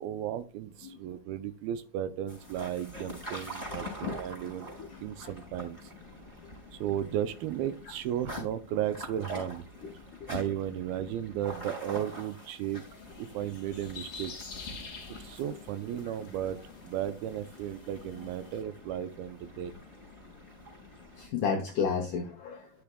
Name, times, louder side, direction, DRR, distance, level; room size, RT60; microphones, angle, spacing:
voice 1, 0.0-4.7 5.0-5.9 6.8-9.7 10.3-12.8 13.2-14.5 15.2-16.6 16.8-19.7, right 10 dB, 80° right, 12 dB, 2.2 m, -35 dB
sound 1, 2.3-21.3, left 1 dB, 5° right, 4.7 m, -44 dB
voice 2, 4.8-5.3 9.8-9.9 10.2-10.3 21.2-22.7, left 6 dB, 75° left, 2 dB, 1.8 m, -32 dB
sound 2, 11.5-18.6, left 4 dB, 30° left, 2.2 m, -49 dB
12.0 x 7.0 x 2.2 m, 0.35 s
omnidirectional pair, 4.8 m